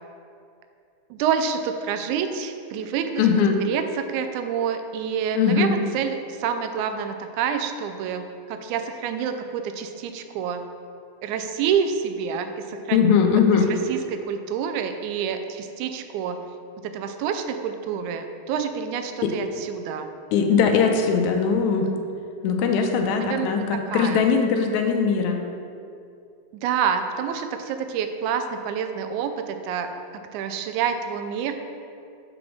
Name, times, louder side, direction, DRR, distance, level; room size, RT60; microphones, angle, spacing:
voice 1, 1.1-3.2 3.6-10.6 11.2-13.1 13.7-16.4 16.8-20.1 23.2-24.2 26.5-31.6, right 7 dB, 90° right, 8 dB, 2.0 m, -28 dB
voice 2, 3.2-3.6 5.4-5.8 12.9-13.7 19.2-19.3 20.3-21.9 22.4-25.4, left 6 dB, 85° left, 4 dB, 2.0 m, -20 dB
6.0 x 5.0 x 6.1 m, 2.5 s
omnidirectional pair, 3.3 m